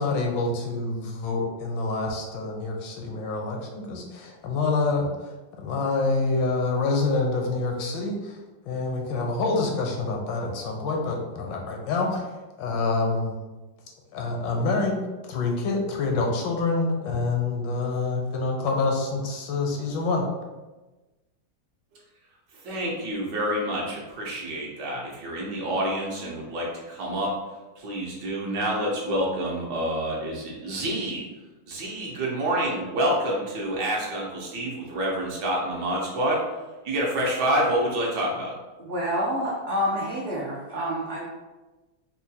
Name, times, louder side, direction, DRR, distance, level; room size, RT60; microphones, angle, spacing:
voice 1, 0.0-5.1 5.6-8.4 8.7-12.2 12.6-13.4 14.1-20.2, left 3 dB, 80° left, 1 dB, 1.3 m, -26 dB
voice 2, 22.6-27.3 27.8-31.2 31.7-36.4 36.8-38.6, right 1 dB, 75° right, -3 dB, 1.3 m, -27 dB
voice 3, 38.8-41.2, equal, 90° right, -5 dB, 0.6 m, -28 dB
4.4 x 2.2 x 2.7 m, 1.2 s
omnidirectional pair, 2.0 m